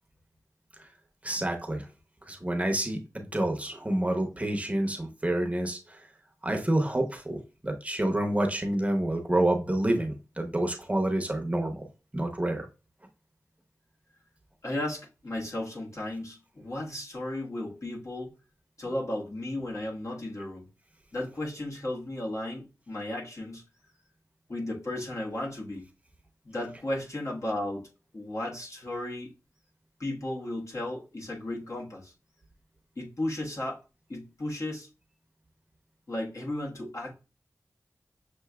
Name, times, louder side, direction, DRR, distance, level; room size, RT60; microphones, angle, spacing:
voice 1, 1.2-1.9 2.3-6.0 6.4-11.9 12.1-12.7, right 1 dB, 20° right, 0.8 m, -28 dB
voice 2, 14.6-18.3 18.8-20.7 21.1-23.6 24.5-25.9 26.4-27.9 28.1-29.3 30.0-32.1 33.0-33.8 34.1-34.9 36.1-37.1, left 1 dB, 55° left, 1.4 m, -34 dB
6.6 x 2.7 x 2.3 m
wide cardioid pair, 65°, 6 cm